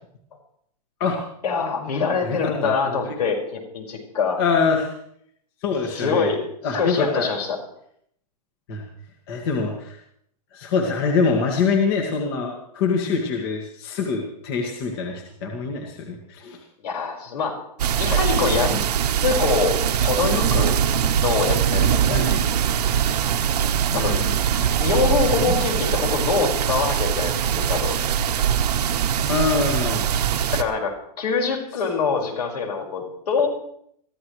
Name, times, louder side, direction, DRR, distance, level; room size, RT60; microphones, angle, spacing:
voice 1, 1.4-4.4 5.9-6.4 6.7-7.6 16.8-17.6 18.0-18.9 19.2-20.7 21.2-22.2 23.9-24.2 24.8-28.1 30.5-33.5, left 5 dB, 75° left, 1 dB, 5.3 m, -24 dB
voice 2, 2.2-3.2 4.4-4.9 5.6-6.3 6.6-7.3 8.7-8.8 9.3-10.0 10.5-16.6 22.1-22.4 23.9-25.1 25.4-25.5 29.3-30.1, left 4 dB, 35° left, 1 dB, 2.0 m, -25 dB
sound 1, 17.8-30.6, right 9 dB, 75° right, 1.3 m, -22 dB
23.0 x 14.5 x 3.2 m, 0.69 s
hypercardioid pair, 170°, 21 cm